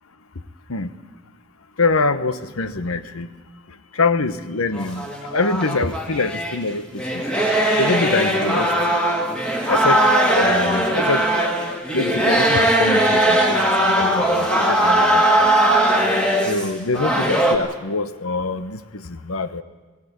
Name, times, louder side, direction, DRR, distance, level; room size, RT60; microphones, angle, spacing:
voice 1, 1.8-3.3 3.9-5.0 5.3-7.2 7.8-8.7 9.7-10.0 10.3-15.5 16.5-19.6, left 3 dB, 85° left, 12 dB, 1.0 m, -24 dB
sound 1, 4.7-6.6 6.9-17.6, right 1 dB, 5° left, 2.1 m, -19 dB
17.5 x 17.0 x 9.5 m, 1.3 s
head